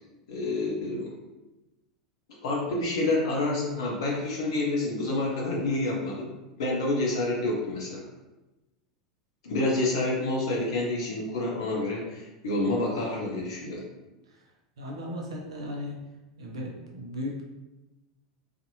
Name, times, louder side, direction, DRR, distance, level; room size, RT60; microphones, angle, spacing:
voice 1, 0.3-1.1 2.4-6.3 6.6-8.0 9.4-13.8, left 2 dB, 60° left, -2 dB, 0.5 m, -28 dB
voice 2, 14.8-15.9 16.4-17.4, left 1 dB, 65° right, 0 dB, 0.6 m, -36 dB
2.6 x 2.4 x 2.6 m, 1.0 s
figure-of-eight pair, 80°, 3 cm